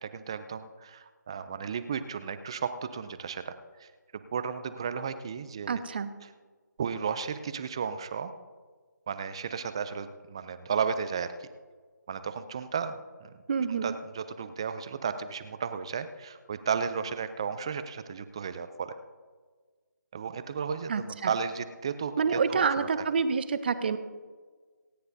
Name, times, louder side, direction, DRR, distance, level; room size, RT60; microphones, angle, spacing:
voice 1, 0.0-3.9 4.3-5.8 6.8-8.3 9.1-11.5 12.1-13.3 13.8-18.9 20.1-22.6, right 6 dB, 15° right, 11 dB, 0.4 m, -34 dB
voice 2, 5.7-6.1 13.5-13.9 20.9-21.3 22.2-24.0, right 5 dB, 35° right, 11 dB, 0.8 m, -28 dB
27.0 x 9.4 x 2.7 m, 1.5 s
figure-of-eight pair, 165°, 10 cm